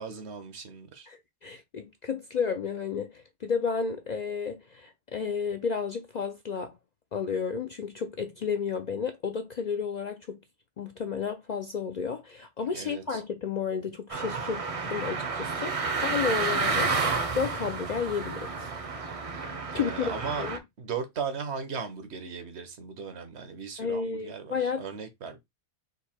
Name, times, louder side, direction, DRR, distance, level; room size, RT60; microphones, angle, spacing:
voice 1, 0.0-1.1 12.7-13.2 19.7-20.5 20.8-25.4, right 6 dB, 70° right, 1.2 m, -37 dB
voice 2, 1.1-6.7 7.1-10.4 10.8-17.1 17.3-18.7 19.7-20.6 23.8-24.8, left 6 dB, 60° left, 0.5 m, -32 dB
sound 1, 14.1-20.6, right 4 dB, 40° right, 0.6 m, -30 dB
3.9 x 2.7 x 4.2 m
omnidirectional pair, 1.2 m